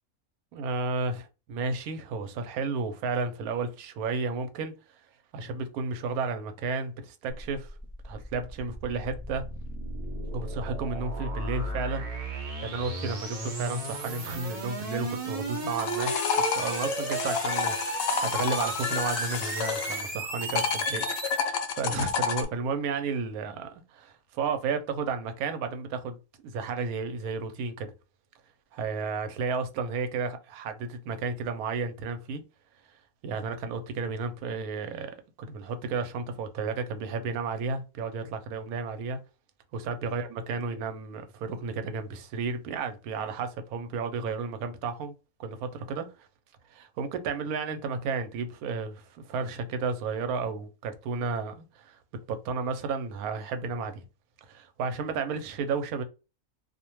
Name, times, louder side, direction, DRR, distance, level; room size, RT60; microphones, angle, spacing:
voice 1, 0.5-4.7 5.3-7.7 8.0-9.4 10.3-26.2 26.4-27.9 28.7-32.4 33.2-39.2 39.7-45.1 45.4-46.3 46.7-52.0 52.3-54.0 54.4-56.0, right 4 dB, 90° right, 1.1 m, -32 dB
sound 1, 7.3-21.4, right 2 dB, 45° right, 0.5 m, -35 dB
sound 2, 15.5-20.1 20.4-22.4, left 6 dB, 75° left, 1.0 m, -29 dB
2.5 x 2.1 x 2.9 m
omnidirectional pair, 1.5 m